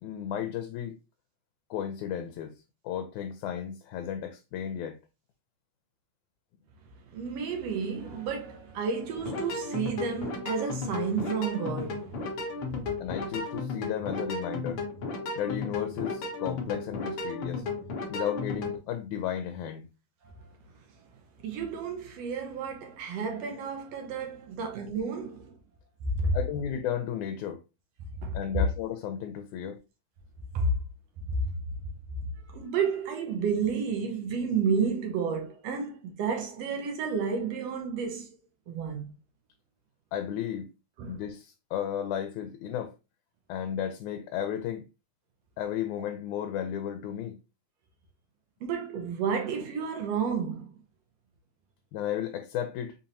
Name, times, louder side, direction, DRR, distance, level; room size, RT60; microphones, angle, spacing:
voice 1, 0.0-0.9 1.7-2.6 2.8-5.0 13.0-14.8 15.4-17.6 18.1-19.9 26.3-27.6 28.3-29.8 40.1-40.7 41.1-43.0 43.5-44.8 45.6-47.4 51.9-53.0, left 9 dB, 85° left, 1.9 m, -34 dB
voice 2, 7.1-12.3 21.4-25.5 26.0-26.4 28.2-28.4 30.5-30.7 31.4-31.5 32.5-38.3 38.7-39.1 41.0-41.2 48.6-50.7, right 5 dB, 70° right, 1.7 m, -31 dB
sound 1, 9.2-18.8, left 3 dB, 65° left, 1.5 m, -34 dB
5.1 x 2.8 x 2.6 m
omnidirectional pair, 3.4 m